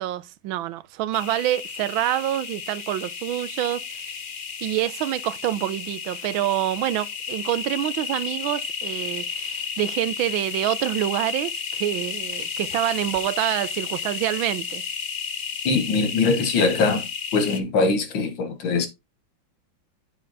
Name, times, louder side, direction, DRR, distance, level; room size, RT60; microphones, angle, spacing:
voice 1, 0.0-4.1 4.6-14.8, right 14 dB, 85° right, 1.4 m, -26 dB
sound 1, 1.1-17.6, left 6 dB, 70° left, 0.4 m, -32 dB
voice 2, 15.7-17.1 17.3-18.9, left 4 dB, 90° left, 2.1 m, -22 dB
8.7 x 7.5 x 2.7 m
omnidirectional pair, 2.1 m